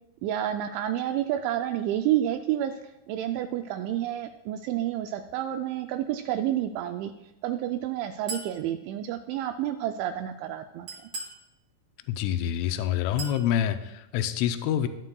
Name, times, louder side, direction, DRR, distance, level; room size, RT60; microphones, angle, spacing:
voice 1, 0.2-2.7 3.1-7.1 7.4-10.9, right 12 dB, 85° right, 7 dB, 2.7 m, -29 dB
Chink clink, 8.3-8.6 10.9-11.4 13.2-13.5, right 3 dB, 35° right, 3.7 m, -37 dB
voice 2, 12.1-14.9, left 10 dB, 85° left, 8 dB, 3.1 m, -27 dB
18.5 x 9.5 x 2.3 m, 0.93 s
omnidirectional pair, 5.7 m